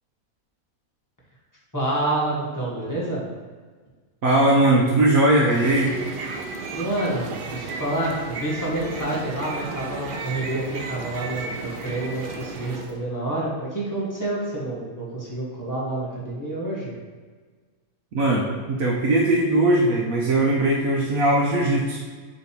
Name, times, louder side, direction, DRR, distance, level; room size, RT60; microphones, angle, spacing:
voice 1, 1.7-3.2 6.7-16.9, right 1 dB, 15° left, -6 dB, 1.6 m, -28 dB
voice 2, 4.2-5.9 18.1-22.0, right 1 dB, 75° right, -3 dB, 1.2 m, -19 dB
sound 1, 5.3-13.0, right 4 dB, 55° right, 0.6 m, -34 dB
6.6 x 3.4 x 4.7 m, 1.5 s
omnidirectional pair, 1.5 m